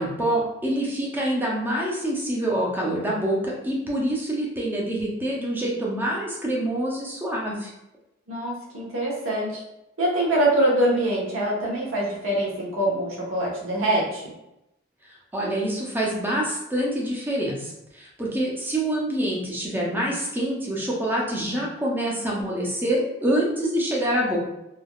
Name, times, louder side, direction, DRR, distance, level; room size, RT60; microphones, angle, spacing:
voice 1, 0.0-7.7 15.1-24.4, right 1 dB, 10° right, -4 dB, 0.5 m, -26 dB
voice 2, 8.3-9.6 10.0-14.3, right 1 dB, 70° right, -4 dB, 0.9 m, -24 dB
3.3 x 2.2 x 2.3 m, 0.88 s
head